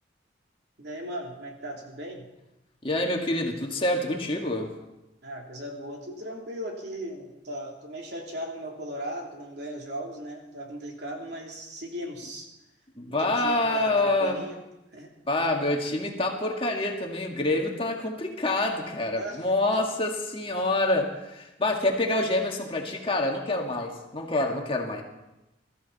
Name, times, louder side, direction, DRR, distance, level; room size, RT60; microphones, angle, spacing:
voice 1, 0.8-2.3 5.2-12.5 13.1-14.6 14.9-15.1 19.2-19.4, equal, 60° right, 0 dB, 3.2 m, -37 dB
voice 2, 2.8-4.7 13.0-14.4 15.3-25.0, left 2 dB, 30° left, 1 dB, 1.8 m, -27 dB
21.5 x 14.0 x 4.2 m, 0.94 s
head